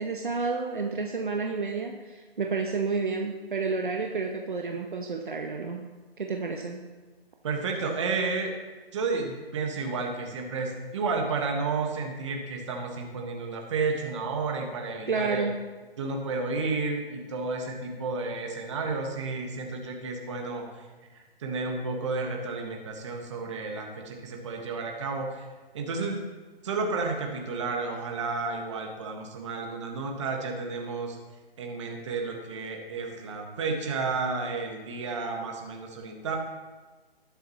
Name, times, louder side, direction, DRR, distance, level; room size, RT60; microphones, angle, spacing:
voice 1, 0.0-6.9 15.1-15.6, right 4 dB, 55° right, 3 dB, 1.0 m, -30 dB
voice 2, 7.4-8.5 8.9-15.5 16.0-20.9 21.1-25.5 25.7-26.2 26.6-31.2 31.6-36.4, right 4 dB, 30° right, 2 dB, 1.5 m, -31 dB
19.5 x 7.8 x 3.0 m, 1.3 s
figure-of-eight pair, 140°, 31 cm